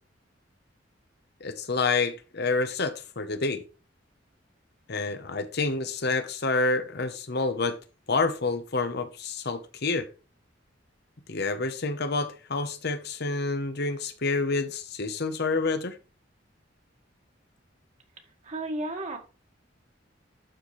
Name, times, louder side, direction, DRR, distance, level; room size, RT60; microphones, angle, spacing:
voice 1, 1.4-3.6 4.9-7.8 8.1-10.1 11.3-16.0, left 3 dB, 60° left, 1.0 m, -28 dB
voice 2, 18.2-19.2, right 2 dB, 40° right, 1.8 m, -34 dB
12.0 x 4.4 x 3.2 m
head